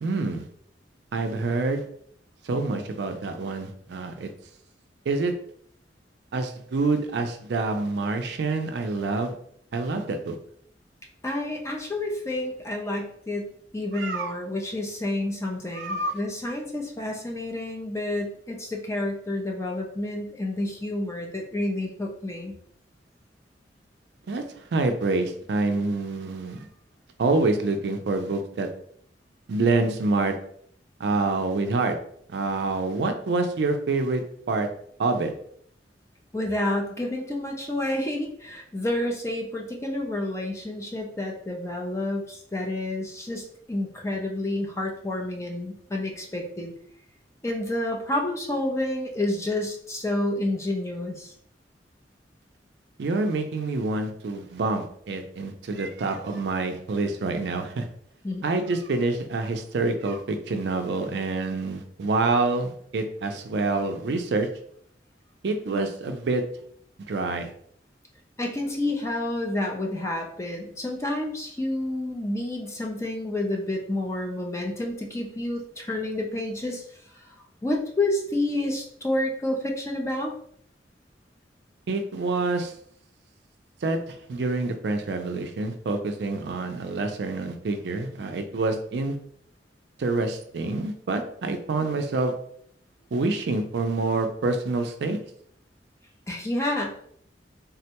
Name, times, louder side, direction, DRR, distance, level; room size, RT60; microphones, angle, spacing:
voice 1, 0.0-0.5 1.1-1.9 2.4-4.3 5.1-5.3 6.3-9.3 9.7-10.4 13.9-14.3 15.7-16.2 24.3-24.4 24.7-26.6 27.2-28.7 29.5-30.4 31.0-31.9 32.3-34.7 35.0-35.3 53.0-57.9 58.4-64.5 65.4-66.4 67.1-67.5 81.9-82.7 83.8-89.2 90.0-92.3 93.1-95.2, right 3 dB, 70° right, 6 dB, 0.4 m, -27 dB
voice 2, 11.2-22.5 36.3-46.7 47.4-51.3 58.2-58.4 68.4-76.8 77.6-80.3 96.3-96.9, left 1 dB, 15° left, 1 dB, 0.4 m, -29 dB
3.6 x 2.1 x 2.8 m, 0.64 s
head